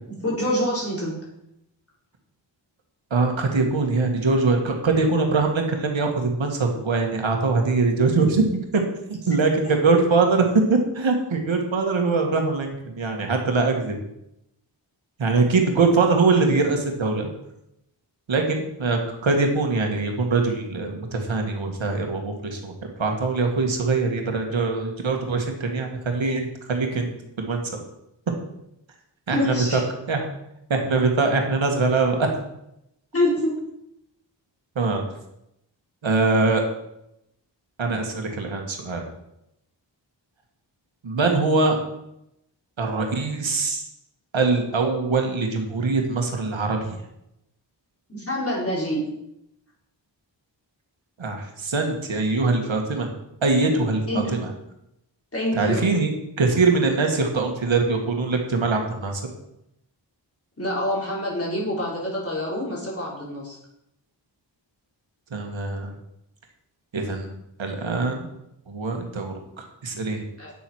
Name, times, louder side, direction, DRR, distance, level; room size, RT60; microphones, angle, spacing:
voice 1, 0.1-1.2 9.6-9.7 29.3-29.8 33.1-33.6 48.1-49.0 54.1-54.3 55.3-55.8 60.6-63.6 70.4-70.5, left 1 dB, 30° left, -5 dB, 4.7 m, -26 dB
voice 2, 3.1-8.8 9.1-14.0 15.2-17.3 18.3-22.7 23.0-27.1 27.4-27.6 29.3-29.8 30.1-30.2 30.7-32.3 34.8-35.0 36.0-36.6 37.8-39.0 41.0-41.8 42.8-43.8 44.3-47.0 51.2-53.1 53.4-54.5 55.6-56.1 56.4-59.2 65.3-65.9 66.9-67.3 67.6-68.3 68.7-70.2, right 3 dB, 85° right, 3 dB, 1.9 m, -22 dB
9.2 x 7.5 x 6.3 m, 0.83 s
wide cardioid pair, 105°, 45 cm